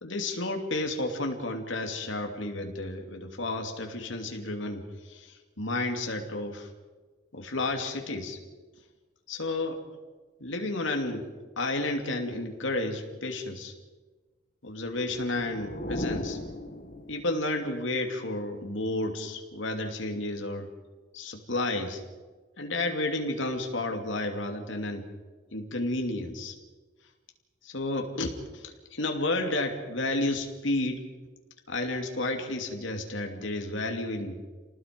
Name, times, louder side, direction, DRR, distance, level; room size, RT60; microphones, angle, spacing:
voice 1, 0.0-6.7 7.3-8.4 9.3-9.8 10.4-11.3 11.6-13.7 14.6-16.4 17.1-20.7 21.1-22.0 22.6-25.1 25.5-26.6 27.6-31.0 31.7-34.4, left 2 dB, 70° left, 3 dB, 2.7 m, -31 dB
sound 1, 14.8-17.5, left 1 dB, 40° left, 1.7 m, -37 dB
29.0 x 19.0 x 5.3 m, 1.3 s
head